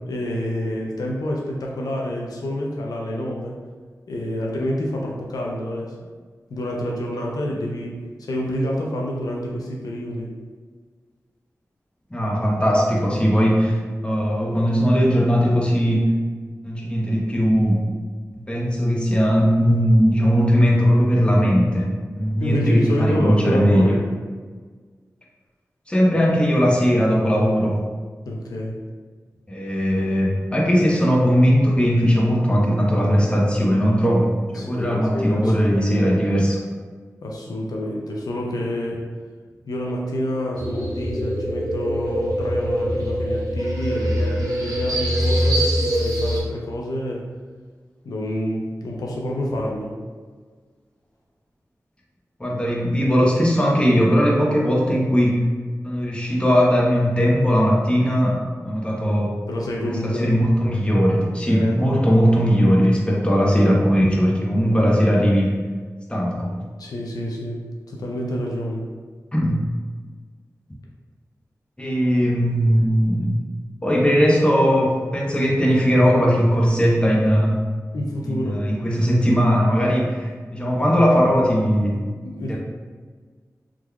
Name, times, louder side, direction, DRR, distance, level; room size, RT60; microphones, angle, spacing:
voice 1, 0.1-3.6 4.1-6.0 6.5-10.4 22.4-24.0 28.3-28.8 34.5-36.1 37.2-39.0 39.7-47.3 48.0-50.0 59.5-60.3 61.5-61.8 66.8-68.9 77.9-78.7 82.2-82.6, left 1 dB, 85° left, -2 dB, 0.5 m, -28 dB
voice 2, 12.1-13.8 14.0-16.1 16.6-17.9 18.3-21.9 22.2-24.0 25.9-27.8 29.5-36.6 52.4-55.4 55.8-59.3 59.8-65.5 66.1-66.5 69.3-69.6 71.8-73.3 73.8-77.7 78.2-82.0 82.5-82.6, equal, 15° left, -3 dB, 0.8 m, -19 dB
sound 1, 40.5-46.4, equal, 65° right, 0.7 m, -23 dB
3.7 x 2.9 x 2.3 m, 1.5 s
cardioid pair, 45°, 6 cm